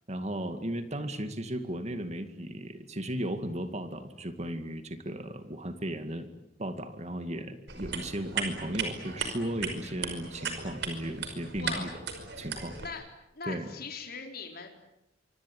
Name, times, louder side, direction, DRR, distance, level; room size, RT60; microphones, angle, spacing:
voice 1, 0.1-6.3 6.6-11.9 12.4-13.0 13.4-13.7, right 1 dB, 35° right, 9 dB, 2.2 m, -35 dB
sound 1, 7.7-12.9, right 5 dB, 65° right, 5.4 m, -37 dB
voice 2, 11.6-11.9 12.8-13.0 13.3-14.7, left 5 dB, 55° left, 3 dB, 4.4 m, -40 dB
25.5 x 25.5 x 9.2 m, 0.84 s
head